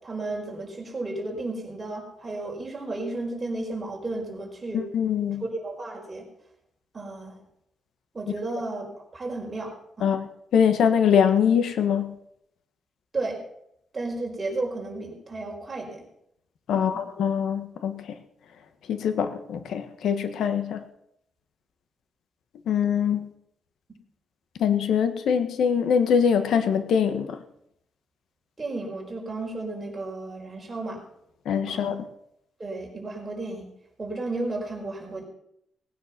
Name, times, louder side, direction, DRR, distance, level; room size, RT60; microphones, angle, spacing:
voice 1, 0.0-4.8 5.4-6.2 6.9-7.4 8.1-8.9 9.1-10.1 13.1-13.4 13.9-16.0 16.7-17.0 28.6-31.0 31.6-32.0 32.6-33.7 34.0-35.2, right 2 dB, 20° right, -1 dB, 4.7 m, -33 dB
voice 2, 4.7-5.4 10.0-10.3 10.5-12.1 16.7-18.2 18.9-20.8 22.7-23.3 24.6-27.4 31.4-32.0, left 7 dB, 75° left, 9 dB, 1.3 m, -23 dB
19.0 x 9.6 x 5.9 m, 0.76 s
cardioid pair, 130°, 0 cm